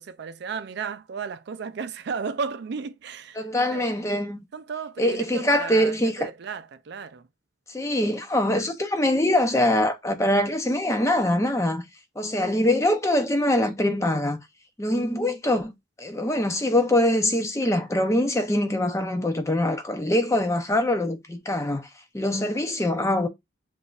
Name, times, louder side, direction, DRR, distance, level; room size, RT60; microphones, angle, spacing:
voice 1, 0.0-3.9 4.5-7.2, right 5 dB, 55° right, 0.4 m, -34 dB
voice 2, 3.4-4.4 5.0-6.3 7.7-11.8 12.2-14.4 14.8-15.7 16.0-21.9 22.1-23.3, left 1 dB, 15° left, 0.5 m, -23 dB
7.0 x 2.5 x 2.3 m
head